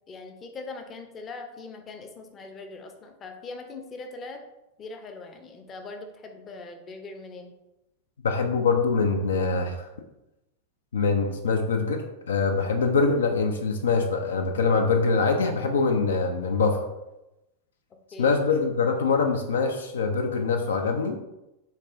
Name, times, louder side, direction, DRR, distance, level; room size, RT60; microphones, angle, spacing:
voice 1, 0.1-4.4 4.8-7.5 18.1-18.4, left 3 dB, 25° left, 5 dB, 0.6 m, -41 dB
voice 2, 8.2-9.9 10.9-12.0 12.3-16.8 18.2-21.2, left 4 dB, 65° left, 5 dB, 0.4 m, -24 dB
5.3 x 3.5 x 2.5 m, 0.95 s
figure-of-eight pair, 90°, 0 cm